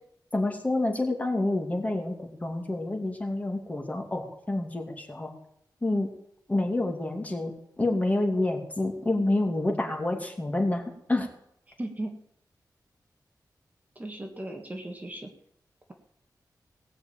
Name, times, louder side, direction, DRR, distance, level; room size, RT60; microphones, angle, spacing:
voice 1, 0.3-5.3 5.8-6.1 6.5-11.3, left 2 dB, 20° left, 2 dB, 2.7 m, -28 dB
voice 2, 11.8-12.1 14.0-15.3, right 1 dB, 20° right, 3 dB, 1.9 m, -36 dB
18.5 x 6.5 x 9.0 m, 0.74 s
wide cardioid pair, 145°, 7 cm